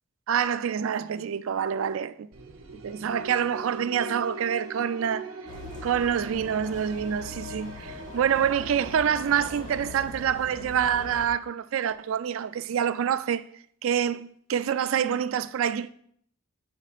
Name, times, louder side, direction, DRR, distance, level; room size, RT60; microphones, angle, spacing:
voice 1, 0.3-2.1 2.8-5.3 5.8-13.5 13.8-15.9, right 8 dB, 70° right, 0.3 m, -26 dB
sound 1, 2.3-9.9, right 2 dB, 85° right, 0.8 m, -42 dB
sound 2, 5.5-11.3, left 2 dB, 40° left, 1.1 m, -42 dB
9.7 x 5.1 x 2.5 m
head